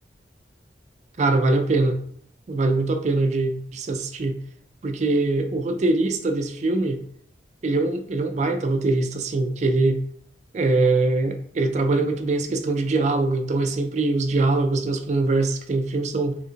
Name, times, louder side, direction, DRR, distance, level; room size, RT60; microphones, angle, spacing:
voice 1, 1.2-2.0 2.5-4.4 4.8-7.0 7.6-10.0 10.5-16.4, right 2 dB, 40° right, 7 dB, 0.3 m, -22 dB
3.4 x 2.8 x 2.8 m, 0.62 s
head